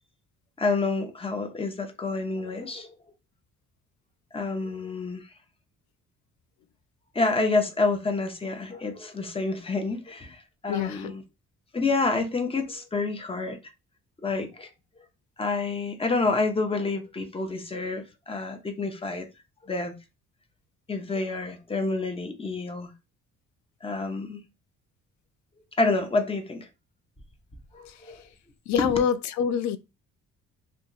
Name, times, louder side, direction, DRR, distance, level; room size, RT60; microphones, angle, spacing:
voice 1, 0.6-2.9 4.3-5.3 7.1-11.2 11.7-13.6 14.2-14.7 15.4-19.3 19.6-19.9 20.9-22.9 23.8-24.4 25.8-26.7 27.7-28.2 28.8-28.9, left 3 dB, 20° left, 0.7 m, -28 dB
voice 2, 10.7-11.1 27.9-28.2 28.7-29.8, left 8 dB, 70° left, 0.4 m, -26 dB
2.7 x 2.3 x 3.7 m
cardioid pair, 90°, 30 cm